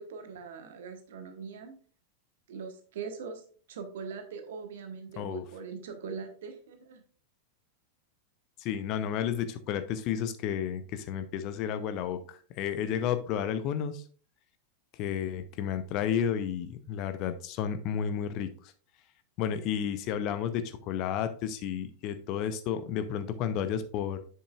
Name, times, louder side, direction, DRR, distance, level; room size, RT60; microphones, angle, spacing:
voice 1, 0.0-1.7 2.5-3.4 3.7-7.0, right 5 dB, 60° right, 7 dB, 1.2 m, -41 dB
voice 2, 8.6-14.0 14.9-18.7 19.4-24.2, left 8 dB, 40° left, 11 dB, 0.7 m, -32 dB
7.6 x 6.9 x 2.4 m, 0.42 s
figure-of-eight pair, 90°, 0 cm